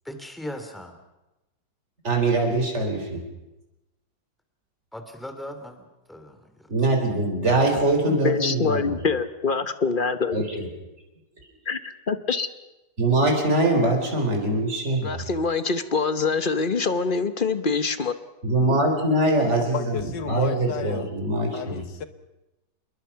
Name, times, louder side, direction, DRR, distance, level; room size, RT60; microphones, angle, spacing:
voice 1, 0.0-1.0 4.9-6.7, left 1 dB, ahead, 2.7 m, -38 dB
voice 2, 2.0-3.2 6.7-8.9 10.3-10.7 13.0-15.2 18.4-20.0 20.3-21.8, right 2 dB, 35° right, 4.6 m, -23 dB
voice 3, 8.1-10.4 11.7-12.5 15.0-18.1 18.7-18.8, left 4 dB, 35° left, 1.0 m, -25 dB
voice 4, 19.7-21.1 21.5-22.1, left 7 dB, 70° left, 1.8 m, -32 dB
27.5 x 21.5 x 5.8 m
omnidirectional pair, 2.0 m